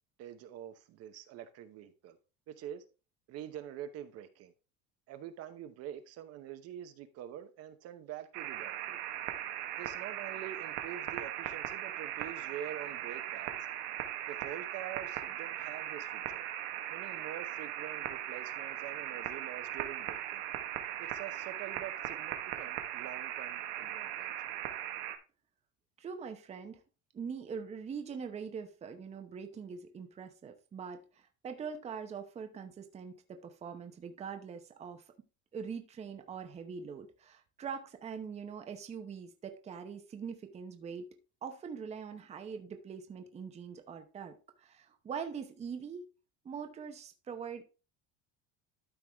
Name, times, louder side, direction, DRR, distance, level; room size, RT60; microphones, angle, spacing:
voice 1, 0.2-2.2 2.5-2.8 3.3-4.5 5.1-9.0 9.8-13.6 14.3-16.5 16.9-20.5 21.0-24.3, right 10 dB, 45° right, 0.9 m, -46 dB
sound 1, 8.3-25.2, right 12 dB, 85° right, 1.5 m, -39 dB
voice 2, 26.0-26.8 27.1-35.0 35.5-46.0 46.4-47.6, right 6 dB, 20° right, 0.8 m, -43 dB
12.5 x 4.7 x 3.5 m
cardioid pair, 165°, 35 cm